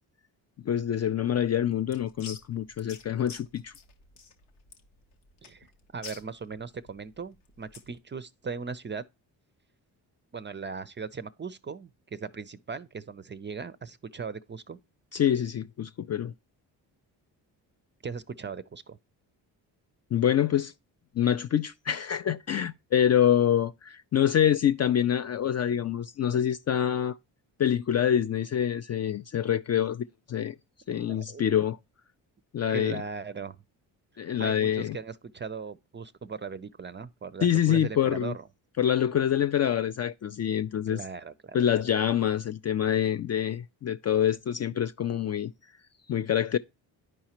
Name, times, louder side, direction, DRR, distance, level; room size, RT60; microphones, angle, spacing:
voice 1, 0.7-3.7 15.1-16.3 20.1-20.7 21.2-27.2 27.6-30.5 30.9-31.8 32.5-33.0 34.2-35.0 37.4-38.3 38.8-41.0 41.5-45.5 46.1-46.6, left 9 dB, 35° left, 0.4 m, -26 dB
sound 1, 1.4-8.0, left 5 dB, 90° left, 1.0 m, -49 dB
voice 2, 5.9-9.0 10.3-14.8 18.0-19.0 31.1-31.5 32.7-33.6 34.4-38.5 40.9-41.6, right 5 dB, 25° right, 0.5 m, -38 dB
10.5 x 4.7 x 2.9 m
hypercardioid pair, 45°, 49 cm